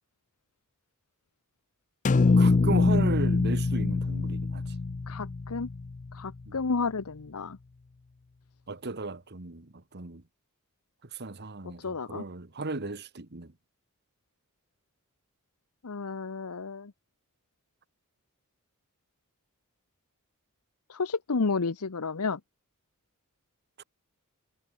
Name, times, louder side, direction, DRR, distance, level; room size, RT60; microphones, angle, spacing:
sound 1, 2.0-6.3, left 3 dB, 35° left, 0.4 m, -24 dB
voice 1, 2.2-4.7 6.5-6.6 8.7-10.2 11.1-13.5 23.8-23.9, right 3 dB, 50° right, 1.6 m, -35 dB
voice 2, 5.1-5.7 6.1-7.6 11.8-12.2 15.8-16.9 20.9-22.4, left 4 dB, 85° left, 0.9 m, -31 dB
head